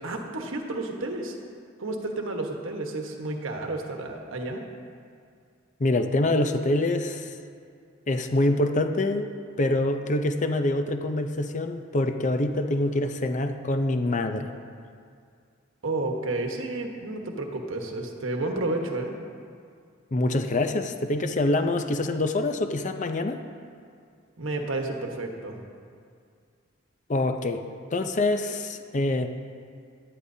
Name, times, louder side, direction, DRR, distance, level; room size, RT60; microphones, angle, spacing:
voice 1, 0.0-1.3 1.8-4.6 15.8-19.1 24.4-25.6, right 2 dB, 75° right, 2 dB, 1.3 m, -31 dB
voice 2, 5.8-7.4 8.1-9.3 9.6-14.5 20.1-23.4 27.1-27.6 27.9-29.3, left 2 dB, 40° left, 7 dB, 0.6 m, -25 dB
18.0 x 12.0 x 2.8 m, 2.2 s
head